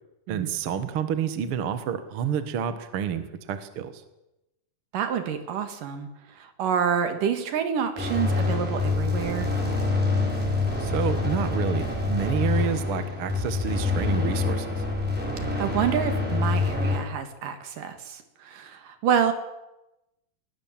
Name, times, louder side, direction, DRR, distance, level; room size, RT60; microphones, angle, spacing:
voice 1, 0.3-3.9 10.8-14.8, right 8 dB, 50° right, 10 dB, 1.9 m, -29 dB
voice 2, 4.9-6.1 6.4-9.5 15.6-19.3, right 8 dB, 70° right, 8 dB, 3.3 m, -28 dB
sound 1, 8.0-17.0, left 3 dB, 5° right, 5.2 m, -26 dB
21.0 x 18.0 x 7.4 m, 0.93 s
omnidirectional pair, 4.0 m